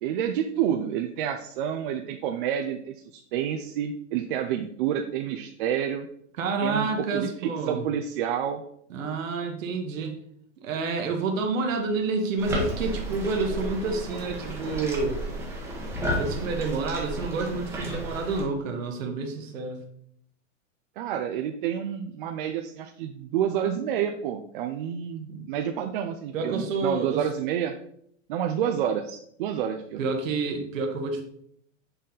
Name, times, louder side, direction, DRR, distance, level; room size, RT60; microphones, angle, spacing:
voice 1, 0.0-6.1 6.6-8.6 21.0-27.7 28.3-30.0, right 9 dB, 45° right, 4 dB, 0.4 m, -29 dB
voice 2, 6.4-7.9 8.9-10.2 10.6-15.2 16.2-19.8 25.3-25.5 26.3-27.3 30.0-31.2, right 4 dB, 90° right, 3 dB, 1.2 m, -29 dB
sound 1, 12.4-18.4, equal, 5° right, 1.0 m, -32 dB
6.4 x 4.1 x 3.8 m, 0.68 s
supercardioid pair, 155°, 38 cm